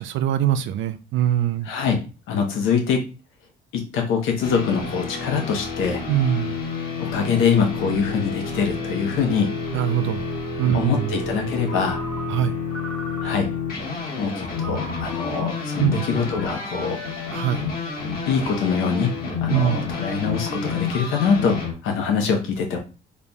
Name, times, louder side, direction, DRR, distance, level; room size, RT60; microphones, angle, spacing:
voice 1, 0.0-1.7 6.1-6.6 9.7-10.2 10.6-11.2 12.3-12.6 15.8-16.1 17.3-17.6 19.5-19.8, right 10 dB, 80° right, 11 dB, 0.5 m, -22 dB
voice 2, 1.7-3.1 3.7-6.0 7.0-9.5 10.7-12.0 13.2-13.5 14.2-17.0 18.3-19.1 19.4-22.8, left 6 dB, 90° left, 3 dB, 1.0 m, -24 dB
sound 1, 4.4-21.7, left 4 dB, 50° left, 1.4 m, -29 dB
Ringtone, 11.6-13.7 14.6-17.9, right 1 dB, ahead, 1.0 m, -39 dB
4.0 x 3.3 x 2.3 m, 0.32 s
cardioid pair, 90°, 20 cm